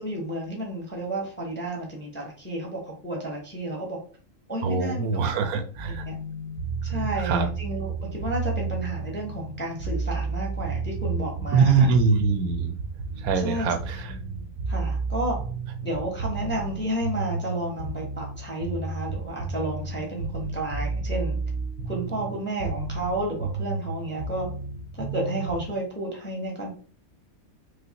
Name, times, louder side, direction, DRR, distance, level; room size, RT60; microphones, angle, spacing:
voice 1, 0.0-4.0 4.5-5.5 6.1-6.2 6.8-11.9 13.4-13.7 14.7-15.4 15.8-21.4 21.9-24.5 25.0-26.7, right 1 dB, 10° left, 0 dB, 0.6 m, -32 dB
voice 2, 4.6-6.0 6.9-7.5 11.5-12.8 13.2-14.1, right 5 dB, 85° right, 8 dB, 1.0 m, -23 dB
sound 1, 5.7-25.7, right 4 dB, 65° right, 0.8 m, -32 dB
4.9 x 2.0 x 2.8 m, 0.42 s
omnidirectional pair, 1.5 m